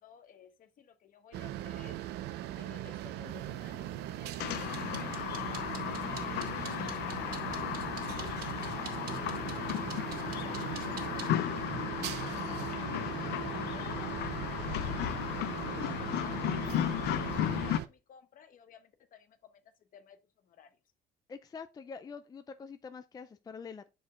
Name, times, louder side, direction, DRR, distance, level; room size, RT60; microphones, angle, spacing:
voice 1, 0.0-2.0 2.3-7.8 8.4-9.6 10.4-12.7 13.2-20.8, left 7 dB, 55° left, 1.1 m, -56 dB
sound 1, 1.3-17.9, right 13 dB, 80° right, 0.6 m, -40 dB
sound 2, 3.3-11.3, right 8 dB, 60° right, 1.8 m, -48 dB
sound 3, 4.4-17.8, left 13 dB, 75° left, 0.5 m, -35 dB
voice 2, 21.3-23.9, left 5 dB, 25° left, 0.4 m, -45 dB
6.3 x 4.5 x 3.7 m
cardioid pair, 110°, 17 cm